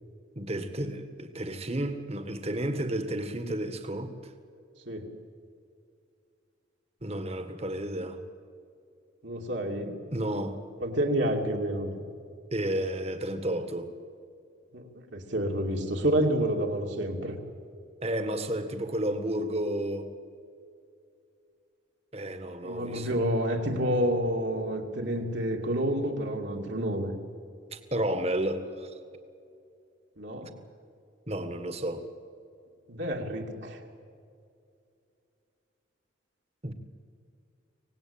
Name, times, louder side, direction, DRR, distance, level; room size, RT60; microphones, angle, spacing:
voice 1, 0.3-4.3 7.0-8.2 10.1-10.6 12.5-13.9 18.0-20.1 22.1-23.2 27.7-28.9 30.4-30.5 31.3-32.1 36.6-36.7, right 1 dB, 30° right, 1.7 m, -32 dB
voice 2, 4.9-5.2 9.2-10.0 10.8-12.0 14.7-17.3 22.6-27.1 30.2-30.6 32.9-33.8, right 1 dB, 65° right, 2.7 m, -29 dB
25.0 x 18.5 x 8.9 m
head